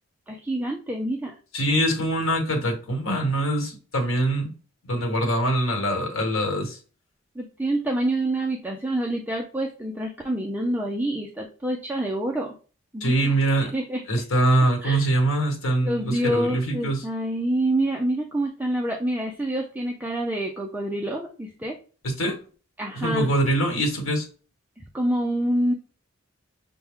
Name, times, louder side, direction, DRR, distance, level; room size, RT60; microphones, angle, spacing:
voice 1, 0.3-1.3 7.4-12.5 12.9-14.0 14.8-15.1 15.8-21.8 22.8-23.3 24.8-25.7, right 1 dB, 10° right, 0.4 m, -27 dB
voice 2, 1.5-4.5 4.9-6.8 13.0-13.7 14.1-17.0 22.0-22.4 22.9-24.2, right 1 dB, 75° left, 1.3 m, -23 dB
5.8 x 2.2 x 3.6 m
head